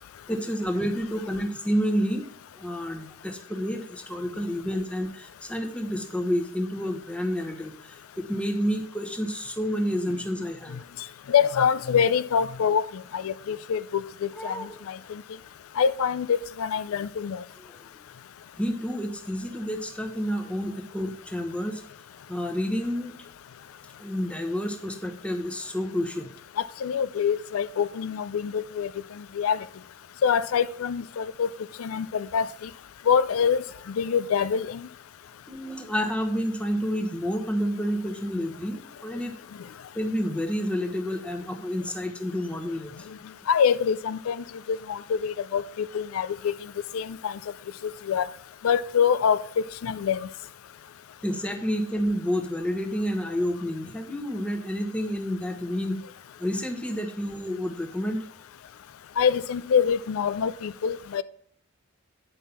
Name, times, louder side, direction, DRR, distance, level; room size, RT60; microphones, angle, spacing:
voice 1, 0.3-2.3 2.6-10.8 14.3-14.8 17.6-17.8 18.6-21.8 22.3-23.1 24.0-26.3 35.5-39.3 39.9-43.1 51.2-56.0 56.4-58.3, equal, 5° left, 1.0 m, -29 dB
voice 2, 11.3-12.8 13.1-14.6 14.9-15.0 15.8-17.4 26.6-28.9 29.4-29.6 30.2-31.5 31.8-32.7 33.1-33.6 34.0-34.8 43.5-46.5 46.9-47.4 48.1-48.3 48.6-49.4 49.8-50.3 59.2-61.2, left 7 dB, 80° left, 0.4 m, -25 dB
9.3 x 5.5 x 5.8 m
head